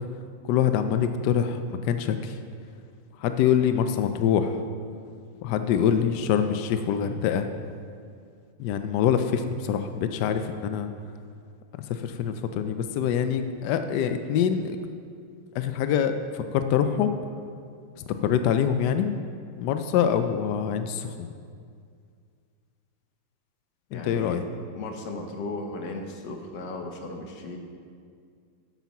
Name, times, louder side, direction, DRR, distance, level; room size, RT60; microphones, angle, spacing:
voice 1, 0.4-2.4 3.2-4.6 5.4-7.5 8.6-10.9 11.7-14.8 15.5-17.1 18.0-19.1 19.5-21.3 23.9-24.4, left 8 dB, 85° left, 9 dB, 0.9 m, -25 dB
voice 2, 23.9-24.4 24.7-27.6, left 2 dB, 60° left, 3 dB, 1.5 m, -36 dB
8.5 x 8.1 x 5.9 m, 2.2 s
omnidirectional pair, 2.4 m